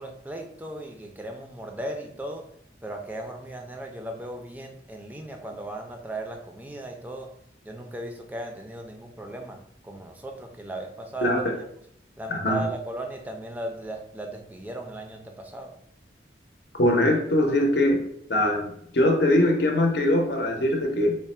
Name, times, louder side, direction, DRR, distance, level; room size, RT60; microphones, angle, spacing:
voice 1, 0.0-2.4 2.8-7.3 7.6-9.6 9.8-11.3 12.2-15.7, right 1 dB, 10° right, 2 dB, 0.4 m, -37 dB
voice 2, 11.2-11.6 12.3-12.6 16.8-18.0 18.3-21.2, left 1 dB, 65° left, 2 dB, 0.6 m, -22 dB
3.3 x 2.1 x 4.2 m, 0.71 s
head